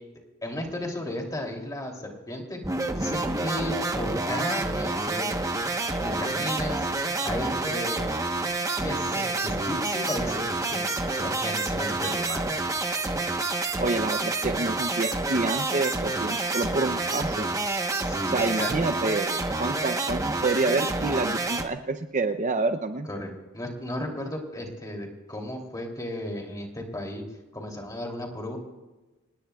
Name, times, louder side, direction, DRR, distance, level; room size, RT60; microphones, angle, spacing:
voice 1, 0.4-2.6 2.9-5.3 6.0-6.9 7.2-8.1 8.8-10.8 11.1-12.4 18.0-18.7 23.0-27.2 27.5-28.6, left 1 dB, 15° left, 1 dB, 2.9 m, -34 dB
sound 1, 2.6-21.7, right 2 dB, 15° right, 1.0 m, -28 dB
voice 2, 13.8-17.5 18.3-23.1, right 3 dB, 35° right, 8 dB, 0.6 m, -28 dB
27.0 x 19.0 x 2.3 m, 1.1 s
head